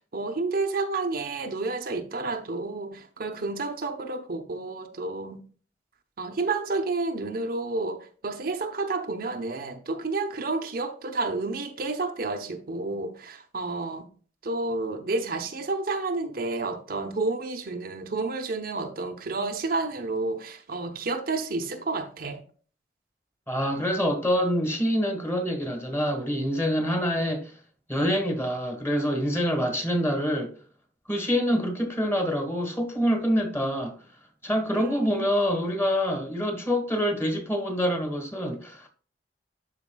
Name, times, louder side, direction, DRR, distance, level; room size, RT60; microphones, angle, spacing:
voice 1, 0.1-5.4 6.2-14.1 14.4-22.4 34.7-35.3, right 3 dB, 55° right, 0.8 m, -30 dB
voice 2, 23.5-27.5 27.9-30.5 31.1-34.0 34.4-38.9, equal, 15° left, 1.6 m, -26 dB
12.5 x 4.4 x 2.2 m
head